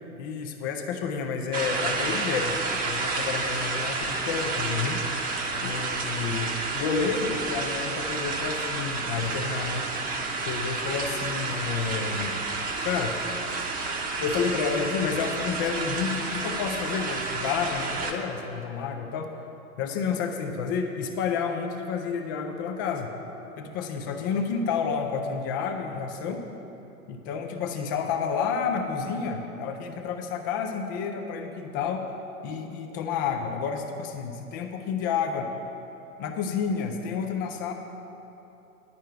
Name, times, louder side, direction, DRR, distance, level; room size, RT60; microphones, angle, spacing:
voice 1, 0.2-5.0 5.6-9.9 10.5-12.3 12.8-13.3 14.2-19.3 19.8-23.1 23.6-26.4 27.1-32.1 32.4-35.5 36.2-37.7, left 6 dB, 15° left, 4 dB, 0.3 m, -30 dB
sound 1, 1.5-18.1, right 3 dB, 20° right, 0.9 m, -30 dB
10.5 x 5.4 x 8.6 m, 3.0 s
figure-of-eight pair, 105°, 43 cm